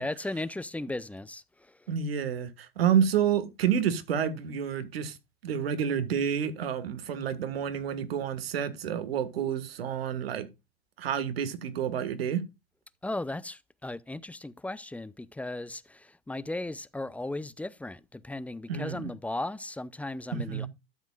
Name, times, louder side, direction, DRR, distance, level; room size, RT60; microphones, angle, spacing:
voice 1, 0.0-1.8 13.0-20.7, left 2 dB, 5° left, 0.5 m, -36 dB
voice 2, 1.9-5.2 5.4-10.5 11.0-12.4 18.7-19.1 20.3-20.7, right 8 dB, 85° right, 1.6 m, -29 dB
12.5 x 7.3 x 2.3 m
hypercardioid pair, 100°, 29 cm